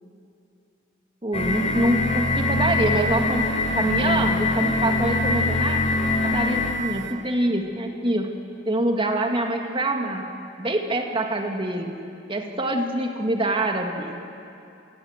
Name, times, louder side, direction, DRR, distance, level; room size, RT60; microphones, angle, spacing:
voice 1, 1.2-3.5 3.8-8.3 8.7-10.3 10.6-11.9 12.3-14.2, right 1 dB, 30° right, 3 dB, 2.0 m, -25 dB
sound 1, 1.3-6.9, left 2 dB, 35° left, 3.3 m, -23 dB
27.5 x 20.5 x 8.1 m, 2.7 s
head